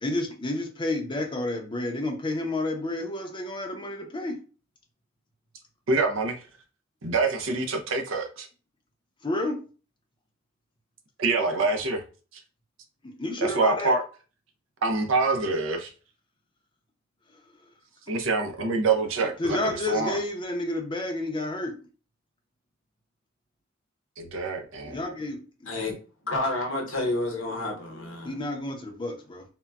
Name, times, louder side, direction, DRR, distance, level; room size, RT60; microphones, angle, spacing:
voice 1, 0.0-4.4 9.2-9.6 13.0-13.9 19.4-21.7 24.8-25.7 28.2-29.4, left 2 dB, 25° left, 0.6 m, -30 dB
voice 2, 5.9-6.4 7.0-8.5 11.2-12.0 13.4-14.0 14.8-15.9 18.1-20.2 24.2-25.0, right 3 dB, 75° right, 0.6 m, -26 dB
voice 3, 25.7-26.0 26.3-28.4, left 2 dB, 70° left, 0.9 m, -29 dB
3.7 x 2.1 x 2.3 m
head